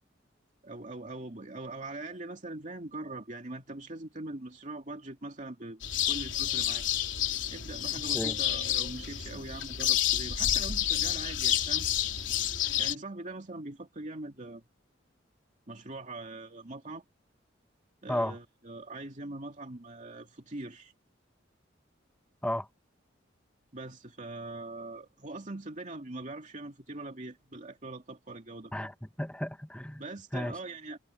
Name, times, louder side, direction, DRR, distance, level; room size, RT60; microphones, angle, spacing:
voice 1, 0.6-6.8 7.5-11.9 12.8-14.6 15.7-17.0 18.0-20.9 23.7-28.9 30.0-31.0, right 2 dB, 40° right, 2.6 m, -42 dB
sound 1, 5.8-13.0, left 11 dB, 75° left, 3.6 m, -29 dB
voice 2, 28.7-30.0 30.3-30.6, left 1 dB, 5° left, 1.7 m, -33 dB
head